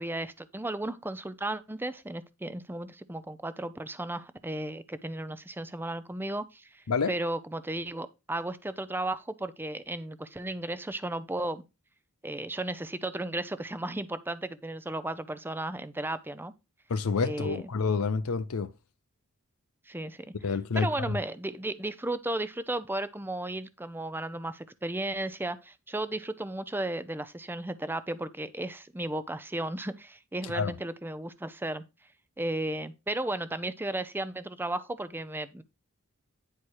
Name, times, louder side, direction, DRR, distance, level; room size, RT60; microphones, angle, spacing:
voice 1, 0.0-11.6 12.2-16.5 17.2-17.7 19.9-31.8 32.4-35.6, right 1 dB, 10° right, 0.6 m, -34 dB
voice 2, 16.9-18.7 20.4-21.2 30.5-30.7, left 4 dB, 75° left, 0.6 m, -28 dB
9.9 x 4.5 x 4.7 m
head